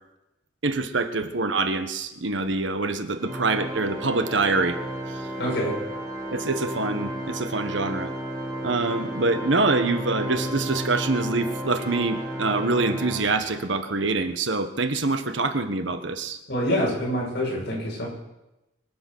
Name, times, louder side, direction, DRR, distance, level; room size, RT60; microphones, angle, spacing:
voice 1, 0.6-4.8 6.3-8.1 8.6-16.4, right 3 dB, 75° right, 9 dB, 1.3 m, -25 dB
Organ, 3.2-13.8, right 1 dB, 20° right, 4.2 m, -33 dB
voice 2, 5.4-5.8 16.5-18.1, equal, 60° left, -3 dB, 6.8 m, -26 dB
23.5 x 8.1 x 6.4 m, 0.94 s
head